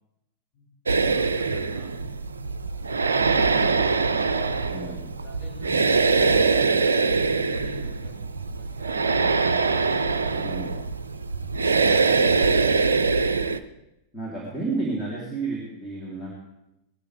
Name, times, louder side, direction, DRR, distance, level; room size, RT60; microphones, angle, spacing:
sound 1, 0.9-13.6, right 4 dB, 75° right, 0.5 m, -23 dB
voice 1, 1.0-1.9 2.9-3.9 4.3-4.9 5.2-7.0 7.5-9.2, left 3 dB, 30° left, -4 dB, 6.8 m, -46 dB
voice 2, 4.7-5.0 10.3-10.8 14.1-16.3, right 3 dB, 15° left, -5 dB, 3.3 m, -32 dB
19.5 x 13.5 x 3.4 m, 0.89 s
figure-of-eight pair, 90°, 0 cm